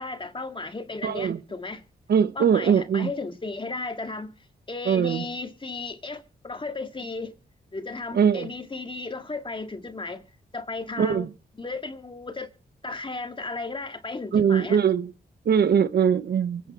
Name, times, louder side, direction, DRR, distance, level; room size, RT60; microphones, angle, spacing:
voice 1, 0.0-1.8 2.4-4.4 4.7-7.4 7.7-10.3 10.5-11.3 11.6-12.5 12.8-14.8, left 3 dB, 30° left, 2.0 m, -34 dB
voice 2, 1.0-1.4 2.1-3.1 4.9-5.2 8.1-8.5 11.0-11.3 14.3-15.1 15.4-16.6, right 7 dB, 70° right, 1.0 m, -21 dB
24.0 x 8.8 x 4.3 m
cardioid pair, 65°, 17 cm